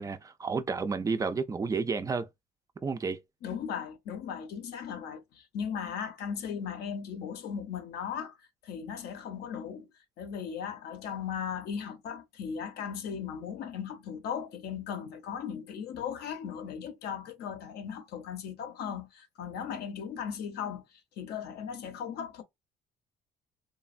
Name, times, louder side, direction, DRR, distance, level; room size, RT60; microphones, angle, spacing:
voice 1, 0.0-2.3 2.8-3.2, right 4 dB, 20° right, 0.4 m, -31 dB
voice 2, 3.4-8.4 8.6-9.9 10.2-20.8 21.2-22.4, left 7 dB, 70° left, 0.8 m, -37 dB
3.2 x 2.1 x 2.5 m
cardioid pair, 110°, 17 cm